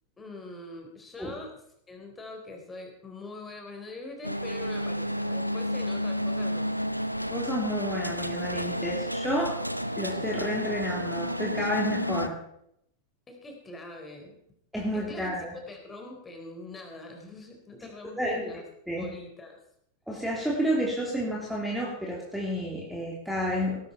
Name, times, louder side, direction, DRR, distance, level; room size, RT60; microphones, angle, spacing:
voice 1, 0.2-1.6 1.9-6.7 13.3-14.4 14.9-18.6 19.0-19.6, left 2 dB, 15° left, 2 dB, 4.1 m, -43 dB
sound 1, 4.2-12.3, equal, 90° right, 0.7 m, -31 dB
voice 2, 7.3-9.6 10.0-12.4 14.7-15.5 18.2-19.0 20.1-23.9, equal, ahead, -4 dB, 3.2 m, -30 dB
18.0 x 13.0 x 4.4 m, 0.73 s
figure-of-eight pair, 90°, 0 cm